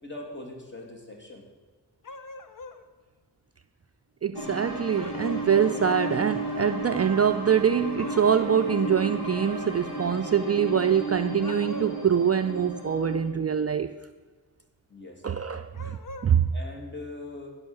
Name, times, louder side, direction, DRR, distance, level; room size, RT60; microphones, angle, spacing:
voice 1, 0.0-1.4 14.9-15.2 16.5-17.5, left 2 dB, 30° left, 0 dB, 2.8 m, -41 dB
sound 1, 2.0-2.8 5.0-5.8 8.0-8.6 11.3-12.1 15.7-16.3, left 2 dB, 50° left, 0.9 m, -42 dB
voice 2, 4.2-13.9 15.2-16.0 16.2-16.5, right 8 dB, 40° right, 8 dB, 0.4 m, -24 dB
sound 2, 4.3-13.2, right 1 dB, 70° left, 3.2 m, -34 dB
16.0 x 5.6 x 7.0 m, 1.4 s
wide cardioid pair, 80°, 40 cm